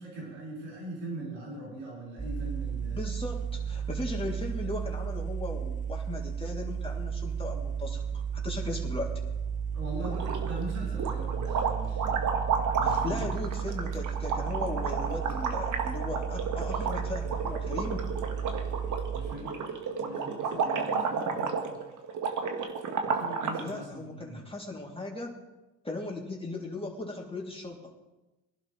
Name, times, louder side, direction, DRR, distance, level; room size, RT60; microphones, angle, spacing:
voice 1, 0.0-3.0 9.7-12.2 12.8-13.3 19.1-21.8 23.1-24.4, right 2 dB, 90° right, -6 dB, 5.6 m, -41 dB
sound 1, 2.2-19.3, right 7 dB, 20° right, 1.1 m, -34 dB
voice 2, 2.9-9.1 12.8-18.0 23.6-25.3 25.8-27.9, left 2 dB, 15° left, -1 dB, 3.2 m, -37 dB
sound 2, 10.0-10.6 10.9-23.7, right 5 dB, 55° right, 1.9 m, -32 dB
22.5 x 11.5 x 3.4 m, 1.1 s
hypercardioid pair, 60°, 36 cm